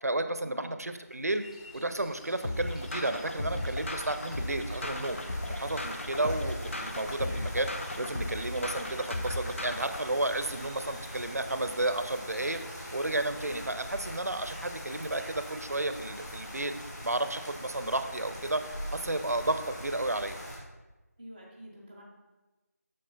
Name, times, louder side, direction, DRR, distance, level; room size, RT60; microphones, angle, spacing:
voice 1, 0.0-1.4 1.7-5.2 5.5-7.7 8.0-12.6 12.9-16.7 17.0-20.4, right 2 dB, 65° right, 10 dB, 0.6 m, -32 dB
sound 1, 1.1-20.6, equal, 80° left, 2.3 m, -43 dB
sound 2, 1.3-15.6, left 1 dB, 20° left, 1.0 m, -55 dB
sound 3, 2.4-10.0, left 1 dB, 50° left, 0.7 m, -36 dB
voice 2, 21.2-22.0, equal, 5° right, -9 dB, 0.4 m, -47 dB
7.8 x 5.9 x 3.8 m, 1.1 s
figure-of-eight pair, 170°, 9 cm